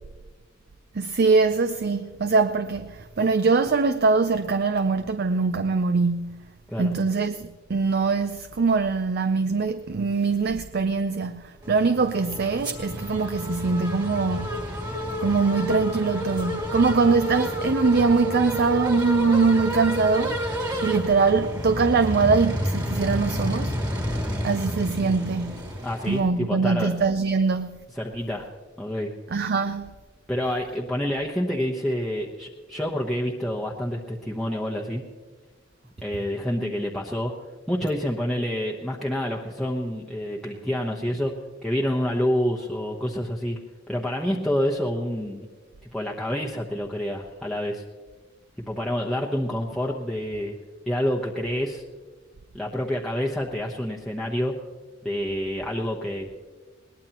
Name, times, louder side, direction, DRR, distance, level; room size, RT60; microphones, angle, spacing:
voice 1, 0.9-6.5 6.8-14.6 15.2-23.8 24.4-25.7 26.1-27.8 29.3-29.9, right 4 dB, 55° right, 0.5 m, -23 dB
sound 1, 11.6-26.2, equal, 20° right, 2.3 m, -30 dB
voice 2, 25.8-26.9 28.0-28.5 28.8-29.1 30.3-35.0 36.0-37.3 37.7-41.3 41.6-43.6 43.9-45.5 45.9-47.8 48.6-50.6 50.9-51.8 52.5-54.6 55.0-56.3, equal, ahead, 1.0 m, -28 dB
21.5 x 19.5 x 3.0 m
head